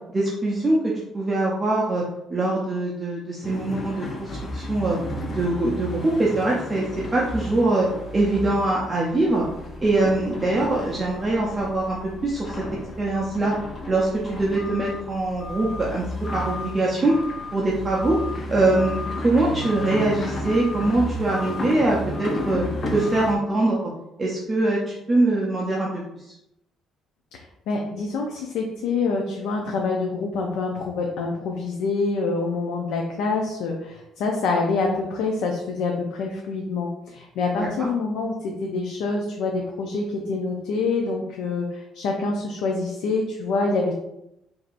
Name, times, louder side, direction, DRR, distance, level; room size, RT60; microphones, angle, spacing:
voice 1, 0.1-0.8 1.1-2.0 2.3-5.0 5.3-9.5 9.8-12.6 13.0-13.6 13.9-16.1 16.3-17.2 17.5-18.2 18.5-22.6 22.9-23.8 24.2-26.0 37.6-37.9, right 2 dB, 20° right, -4 dB, 0.5 m, -23 dB
sound 1, 3.4-23.4, left 1 dB, 35° left, 0.5 m, -33 dB
voice 2, 27.3-43.9, left 3 dB, 80° left, 1 dB, 0.5 m, -26 dB
4.6 x 2.6 x 2.5 m, 0.85 s
cardioid pair, 150°, 0 cm